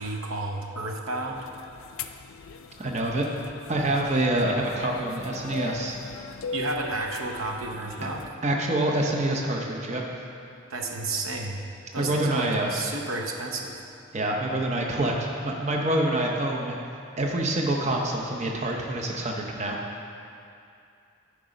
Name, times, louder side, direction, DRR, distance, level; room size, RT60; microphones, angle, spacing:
voice 1, 0.0-1.5 6.5-8.3 10.7-11.6 11.9-13.8, right 2 dB, 90° right, 2 dB, 0.8 m, -32 dB
sound 1, 1.3-8.3, left 4 dB, 75° left, 0.4 m, -39 dB
voice 2, 2.8-3.2 3.7-6.0 8.4-10.0 12.0-12.7 14.1-16.8 17.2-19.8, right 1 dB, 35° right, 0 dB, 0.7 m, -26 dB
10.5 x 4.9 x 5.0 m, 2.5 s
head